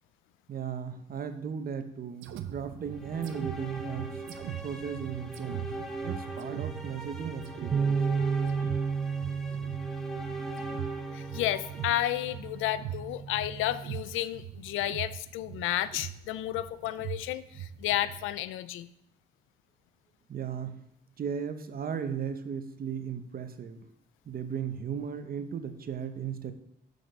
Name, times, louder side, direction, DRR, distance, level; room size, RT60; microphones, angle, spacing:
voice 1, 0.5-4.2 4.6-5.7 6.0-8.0 20.3-20.8 21.2-23.9 24.3-26.5, right 7 dB, 50° right, 9 dB, 0.8 m, -36 dB
sound 1, 2.2-18.4, right 11 dB, 85° right, 0.6 m, -42 dB
sound 2, 2.8-13.1, right 1 dB, ahead, 1.2 m, -41 dB
sound 3, 7.7-14.0, right 5 dB, 30° right, 0.4 m, -33 dB
voice 2, 11.1-18.9, left 13 dB, 85° left, 15 dB, 0.4 m, -32 dB
7.7 x 5.2 x 5.2 m, 0.77 s
cardioid pair, 90°, 20 cm